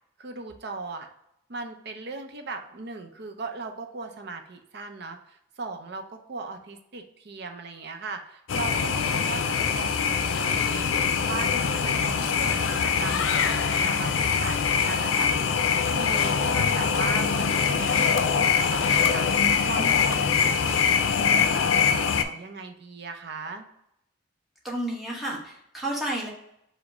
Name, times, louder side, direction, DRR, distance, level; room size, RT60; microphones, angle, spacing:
voice 1, 0.2-1.1 1.5-23.6, right 4 dB, 60° right, 5 dB, 0.6 m, -38 dB
sound 1, 8.5-22.2, left 6 dB, 90° left, 0.4 m, -23 dB
voice 2, 19.4-20.0 24.6-26.3, right 1 dB, ahead, -5 dB, 1.1 m, -32 dB
5.0 x 2.2 x 4.8 m, 0.77 s
head